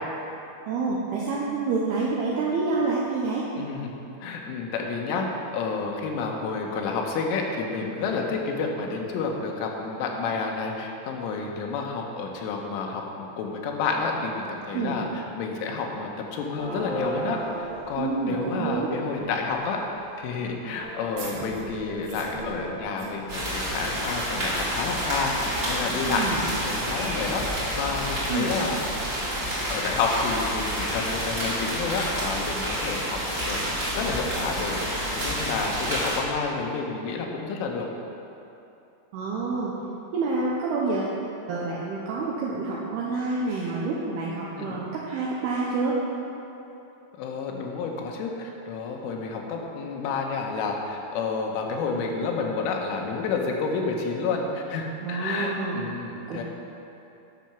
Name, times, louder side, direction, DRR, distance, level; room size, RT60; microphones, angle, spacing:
voice 1, 0.7-3.5 14.7-14.9 18.0-19.0 26.1-26.4 28.3-28.5 39.1-39.7 40.1-41.2 41.5-46.0 55.0-55.8 56.3-56.4, right 3 dB, 80° right, -5 dB, 2.3 m, -28 dB
voice 2, 3.6-3.9 4.2-28.8 29.7-33.2 33.5-37.9 44.5-44.8 47.2-56.4, left 4 dB, 85° left, 1 dB, 3.4 m, -30 dB
sound 1, 16.6-19.5 20.0-20.1 20.5-22.8, right 2 dB, 65° left, 1.4 m, -37 dB
sound 2, 20.8-26.2, right 3 dB, 65° right, 2.9 m, -45 dB
sound 3, 23.3-36.2, equal, 25° right, 1.2 m, -29 dB
10.5 x 6.5 x 5.9 m, 2.9 s
omnidirectional pair, 5.6 m